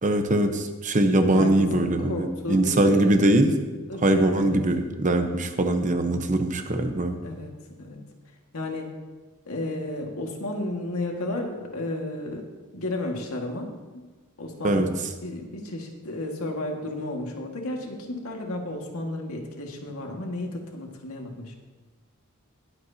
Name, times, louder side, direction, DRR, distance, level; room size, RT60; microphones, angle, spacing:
voice 1, 0.0-3.5 4.0-7.2 14.6-14.9, right 1 dB, 35° right, 6 dB, 0.9 m, -22 dB
voice 2, 1.2-3.2 3.9-4.6 7.2-7.5 7.8-8.0 8.5-9.0 9.5-12.4 12.7-14.1 14.4-15.0 15.2-21.5, left 1 dB, 80° left, 1 dB, 1.8 m, -33 dB
20.0 x 7.9 x 2.8 m, 1.3 s
head